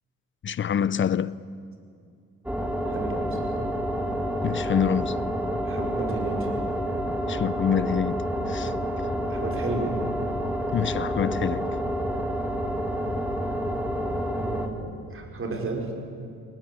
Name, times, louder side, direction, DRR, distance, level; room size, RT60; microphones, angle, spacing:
voice 1, 0.4-1.4 4.4-5.2 7.3-8.7 10.7-11.7, left 8 dB, 40° left, 0.7 m, -26 dB
sound 1, 2.5-14.7, equal, 5° right, 2.7 m, -28 dB
voice 2, 2.8-3.4 5.6-6.5 9.3-10.0 14.3-15.9, right 3 dB, 45° right, 4.9 m, -33 dB
23.5 x 21.0 x 8.5 m
cardioid pair, 90°, 30 cm